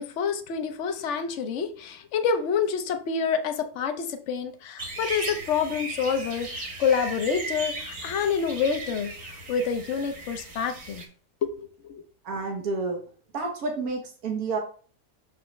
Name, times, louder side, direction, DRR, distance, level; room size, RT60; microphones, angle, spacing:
voice 1, 0.0-11.0 11.4-12.0, left 6 dB, 60° left, 8 dB, 1.1 m, -28 dB
sound 1, 4.8-11.1, right 3 dB, 65° right, 1.9 m, -37 dB
voice 2, 12.2-13.0 13.3-14.6, right 3 dB, 85° right, 2 dB, 1.5 m, -29 dB
6.1 x 6.1 x 3.2 m, 0.42 s
omnidirectional pair, 1.5 m